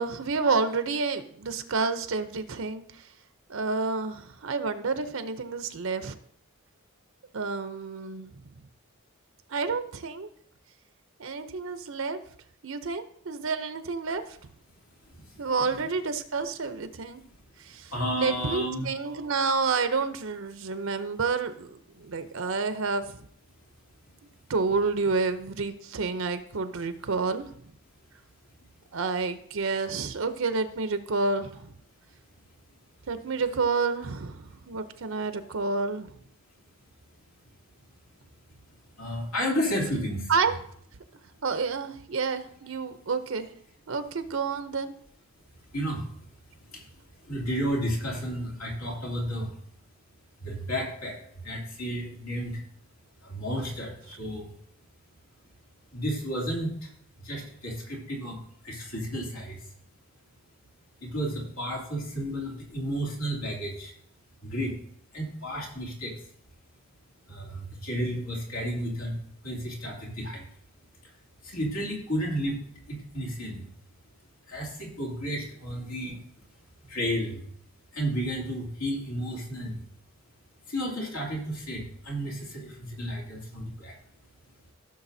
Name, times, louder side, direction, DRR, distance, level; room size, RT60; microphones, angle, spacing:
voice 1, 0.0-3.1 3.5-6.1 7.3-8.3 9.5-10.3 11.2-12.2 12.6-14.2 15.4-17.2 17.6-17.9 18.2-23.2 24.5-27.4 28.9-31.7 33.1-36.1 40.3-40.5 41.4-43.5 43.9-44.9, right 4 dB, 65° right, 10 dB, 0.6 m, -29 dB
voice 2, 15.1-15.9 17.9-18.9 39.0-40.6 45.7-46.1 46.5-46.9 47.1-49.5 50.4-52.6 53.2-54.5 55.9-56.9 57.2-59.7 61.0-63.9 64.4-64.7 65.1-66.1 67.3-70.5 71.4-73.7 74.5-76.2 76.8-77.4 77.9-79.8 80.7-84.0, equal, 70° left, -2 dB, 2.8 m, -32 dB
15.5 x 6.6 x 2.7 m, 0.65 s
head